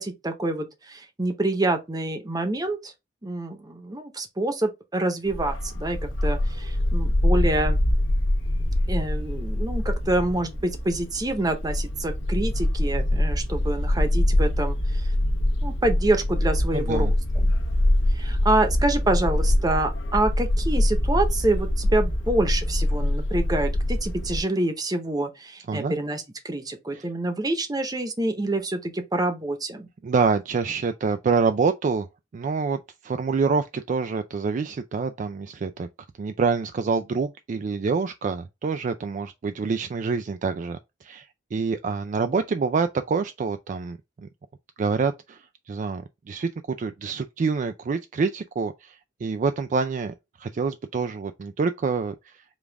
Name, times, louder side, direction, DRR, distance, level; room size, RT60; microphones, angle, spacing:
voice 1, 0.0-2.9 3.2-7.8 8.9-15.1 15.6-17.1 17.3-17.5 18.1-29.9, right 2 dB, 20° right, 0.8 m, -27 dB
Bark, 5.3-24.4, left 1 dB, 85° left, 1.1 m, -24 dB
voice 2, 16.7-17.1 25.7-26.0 26.9-27.1 30.0-32.1 32.3-35.9 36.2-44.3 44.8-52.4, right 5 dB, 40° right, 0.3 m, -27 dB
5.1 x 2.4 x 3.4 m
head